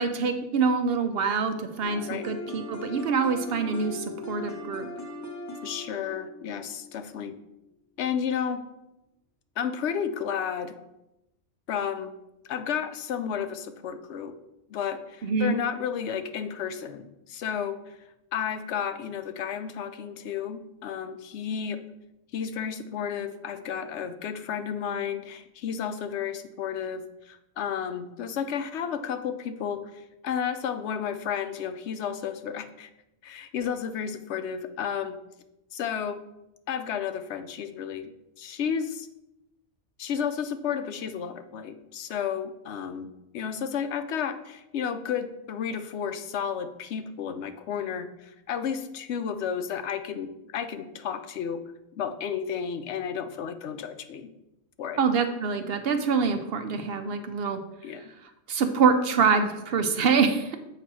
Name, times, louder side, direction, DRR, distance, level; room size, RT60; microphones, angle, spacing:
voice 1, 0.0-4.9 15.2-15.6 55.0-57.6 58.5-60.6, right 5 dB, 60° right, 7 dB, 0.8 m, -25 dB
sound 1, 1.8-7.6, left 1 dB, 15° left, 0.7 m, -39 dB
voice 2, 5.6-7.4 8.0-8.6 9.6-10.8 11.7-12.1 12.4-14.4 14.7-18.0 18.3-21.8 22.3-32.9 33.2-35.2 35.7-36.2 36.7-39.1 40.0-51.6 51.9-54.3 54.8-55.0 57.8-58.1, left 7 dB, 70° left, 9 dB, 0.9 m, -32 dB
7.5 x 3.0 x 6.0 m, 0.90 s
omnidirectional pair, 1.2 m